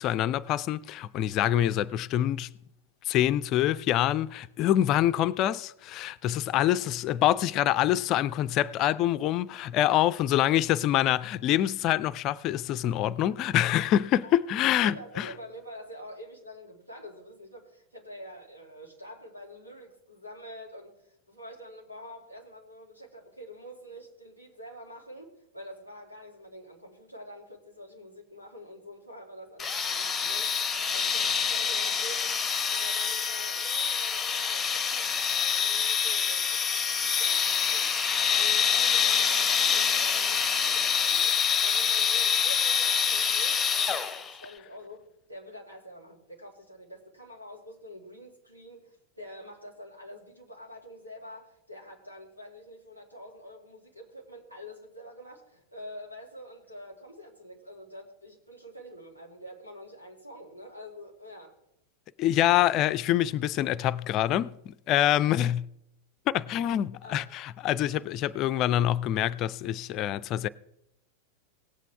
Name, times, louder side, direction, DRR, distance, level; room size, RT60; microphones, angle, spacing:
voice 1, 0.0-2.5 3.1-15.3 62.2-65.7 66.3-70.5, left 12 dB, 35° left, 0.4 m, -26 dB
voice 2, 14.8-30.6 30.9-32.4 32.7-61.5 67.0-67.2, equal, 85° right, 2.7 m, -46 dB
sound 1, 29.6-44.4, left 7 dB, 15° left, 0.7 m, -26 dB
18.0 x 8.1 x 3.5 m
figure-of-eight pair, 90°, 0 cm